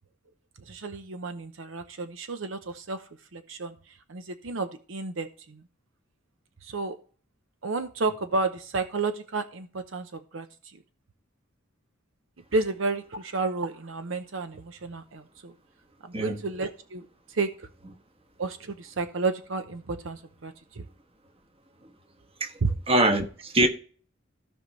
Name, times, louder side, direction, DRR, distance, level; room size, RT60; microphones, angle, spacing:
voice 1, 0.6-3.0 3.3-5.6 6.6-7.0 7.6-10.8 12.5-15.5 16.0-17.7 18.4-20.9 22.6-22.7, right 3 dB, 70° right, 0.8 m, -31 dB
voice 2, 22.9-23.7, right 1 dB, 30° right, 1.2 m, -23 dB
15.5 x 5.4 x 3.2 m
head